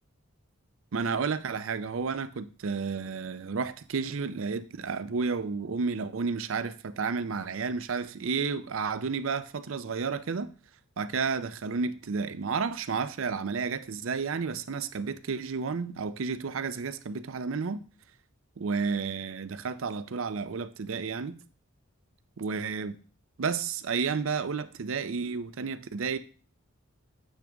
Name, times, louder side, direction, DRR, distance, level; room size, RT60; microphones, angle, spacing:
voice 1, 0.9-10.5 11.0-17.8 18.6-21.4 22.4-23.0 23.4-26.2, right 5 dB, 70° right, 0.5 m, -31 dB
9.0 x 3.5 x 5.1 m
head